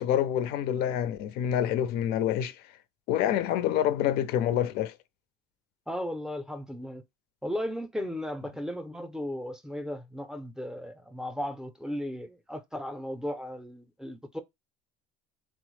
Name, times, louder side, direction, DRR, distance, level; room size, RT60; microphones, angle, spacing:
voice 1, 0.0-2.6 3.1-4.9, left 10 dB, 70° left, 0.4 m, -27 dB
voice 2, 5.9-7.0 7.4-14.4, left 1 dB, 5° right, 0.5 m, -36 dB
3.4 x 2.0 x 3.1 m
cardioid pair, 120°, 17 cm